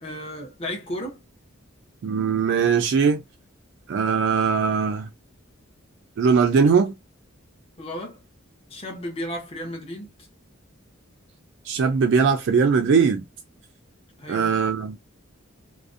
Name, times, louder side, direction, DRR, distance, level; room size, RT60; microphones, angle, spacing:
voice 1, 0.0-1.2 7.8-8.2 8.7-10.1 14.2-14.5, equal, 30° left, 0.7 m, -33 dB
voice 2, 2.0-3.2 3.9-5.1 6.2-6.9 11.7-13.2 14.3-15.0, right 5 dB, 60° right, 0.3 m, -20 dB
2.4 x 2.0 x 2.4 m
head